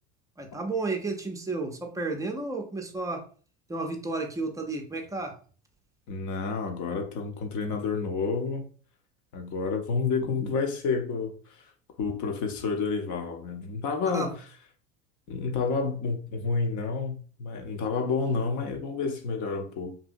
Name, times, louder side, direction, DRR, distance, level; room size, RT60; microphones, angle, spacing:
voice 1, 0.4-3.3 3.7-5.4 14.1-14.4, right 3 dB, 10° right, 0.5 m, -32 dB
voice 2, 6.1-8.7 9.3-11.4 12.0-14.3 15.3-19.9, left 4 dB, 50° left, 0.7 m, -29 dB
2.8 x 2.6 x 2.5 m
hypercardioid pair, 85°, 38 cm